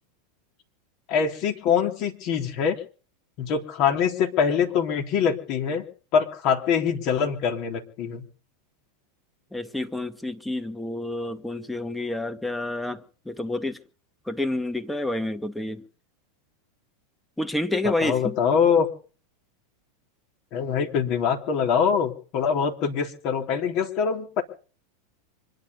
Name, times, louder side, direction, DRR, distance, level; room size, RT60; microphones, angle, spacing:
voice 1, 1.1-2.8 3.4-5.8 6.1-8.2 18.0-18.9 20.5-24.4, left 7 dB, 50° left, 4 dB, 3.6 m, -24 dB
voice 2, 9.5-13.8 14.3-15.8 17.4-18.4, left 1 dB, 5° left, 8 dB, 1.6 m, -29 dB
25.5 x 10.5 x 5.3 m, 0.40 s
hypercardioid pair, 95°, 0 cm